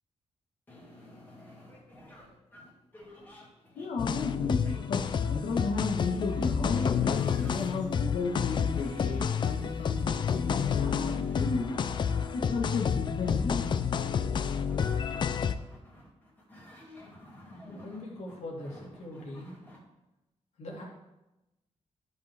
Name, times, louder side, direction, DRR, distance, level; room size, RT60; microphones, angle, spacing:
sound 1, 0.7-19.8, left 1 dB, 15° left, 2.2 m, -52 dB
voice 1, 3.7-12.0 12.3-13.7, left 3 dB, 85° left, 1 dB, 1.5 m, -34 dB
sound 2, 4.0-15.6, left 7 dB, 40° left, 0.4 m, -29 dB
voice 2, 17.6-19.6 20.6-20.8, left 1 dB, 70° left, -3 dB, 2.6 m, -41 dB
13.0 x 5.6 x 3.5 m, 0.97 s
wide cardioid pair, 170°, 12 cm